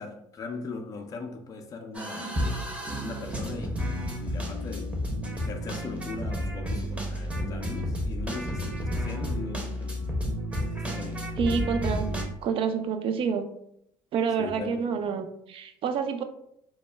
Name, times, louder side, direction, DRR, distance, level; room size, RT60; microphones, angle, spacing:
voice 1, 0.0-2.3 3.0-5.0 5.3-10.0 10.7-11.4 14.4-15.0, left 4 dB, 30° left, 0.4 m, -39 dB
sound 1, 1.9-12.2, equal, 10° right, 0.6 m, -31 dB
voice 2, 11.4-12.1 12.4-13.5 14.1-16.2, right 6 dB, 50° right, 0.4 m, -28 dB
2.1 x 2.0 x 3.3 m
supercardioid pair, 95°, 12 cm